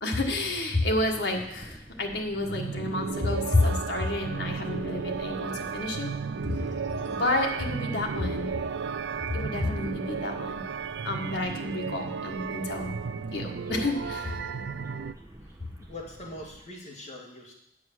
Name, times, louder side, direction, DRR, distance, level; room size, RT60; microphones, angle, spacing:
voice 1, 0.0-6.1 6.9-8.5 9.3-10.6 11.0-12.9 13.3-14.3, left 2 dB, 75° left, 1 dB, 1.5 m, -29 dB
sound 1, 1.0-16.6, right 1 dB, 15° right, 1.2 m, -48 dB
sound 2, 2.4-15.1, right 6 dB, 80° right, 0.4 m, -34 dB
voice 2, 15.8-17.5, left 1 dB, 40° left, -3 dB, 2.2 m, -42 dB
9.4 x 4.8 x 7.4 m, 0.80 s
head